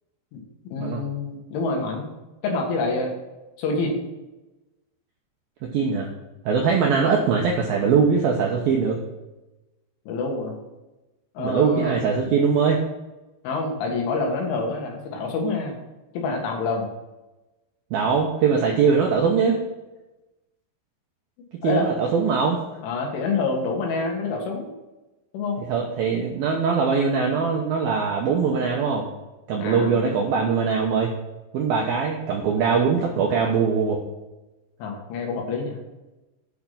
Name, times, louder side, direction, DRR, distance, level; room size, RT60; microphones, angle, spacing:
voice 1, 0.7-2.1 2.4-3.1 3.6-4.0 10.1-10.6 11.4-12.0 13.4-15.8 16.1-16.9 21.6-21.9 22.8-24.7 25.3-25.6 29.6-30.1 34.8-35.8, left 3 dB, 75° left, 1 dB, 4.1 m, -27 dB
voice 2, 5.6-6.1 6.5-9.0 11.4-12.8 17.9-19.6 21.6-22.6 25.7-29.1 29.5-31.2 31.5-34.0, right 5 dB, 75° right, 0 dB, 2.2 m, -21 dB
9.2 x 5.9 x 5.9 m, 1.0 s
omnidirectional pair, 5.7 m